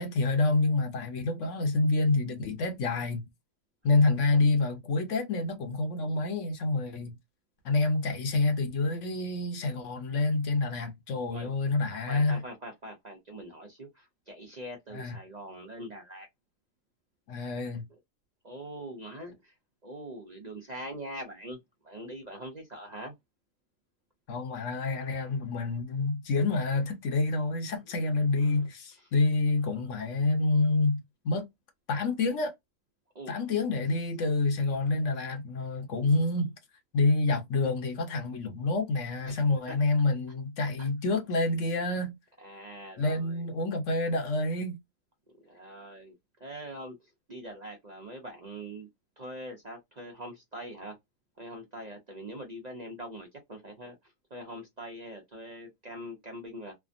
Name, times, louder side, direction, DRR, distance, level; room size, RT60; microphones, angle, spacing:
voice 1, 0.0-3.3 3.8-7.2 7.6-12.4 14.9-15.2 17.3-17.9 24.3-31.5 31.9-32.5 33.3-36.5 36.9-42.1 43.0-44.8, left 3 dB, 65° left, 1.1 m, -28 dB
voice 2, 12.0-16.3 18.4-19.5 19.8-23.1 28.4-28.7 29.0-29.1 33.1-33.4 39.3-39.8 40.8-40.9 42.4-43.5 45.3-48.9 49.2-51.0 51.4-56.8, right 1 dB, 40° right, 0.6 m, -43 dB
3.4 x 2.0 x 2.5 m
omnidirectional pair, 1.5 m